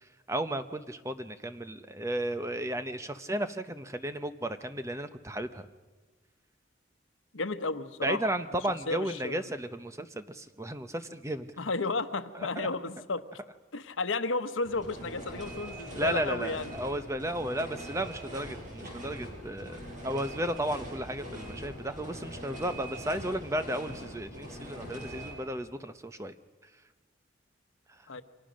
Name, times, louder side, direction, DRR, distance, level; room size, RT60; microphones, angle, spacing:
voice 1, 0.3-5.7 8.0-11.5 12.3-12.7 15.9-26.3, right 1 dB, 15° right, 10 dB, 0.8 m, -34 dB
voice 2, 7.3-8.2 8.9-9.5 11.6-13.2 13.7-16.7 28.1-28.2, left 3 dB, 85° left, 11 dB, 1.1 m, -33 dB
sound 1, 14.6-25.3, equal, 40° right, 6.6 m, -42 dB
28.5 x 24.5 x 6.4 m, 1.3 s
head